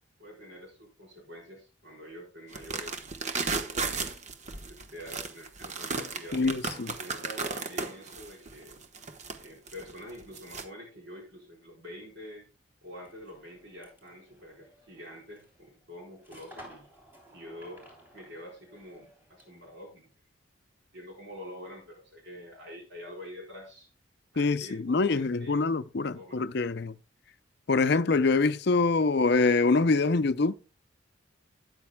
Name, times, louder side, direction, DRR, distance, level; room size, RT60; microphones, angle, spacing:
voice 1, 0.2-3.0 3.6-4.2 4.7-8.8 9.4-12.5 12.8-16.9 17.3-17.9 18.1-20.1 20.9-23.9 24.3-25.6 26.1-26.5, equal, 60° right, 4.4 m, -46 dB
sound 1, 2.5-10.6, right 4 dB, 35° right, 1.0 m, -35 dB
voice 2, 6.3-6.9 24.4-27.0 27.7-30.5, left 3 dB, 55° left, 0.5 m, -25 dB
sound 2, 12.9-19.7, equal, 10° right, 3.3 m, -55 dB
13.0 x 9.7 x 2.2 m
head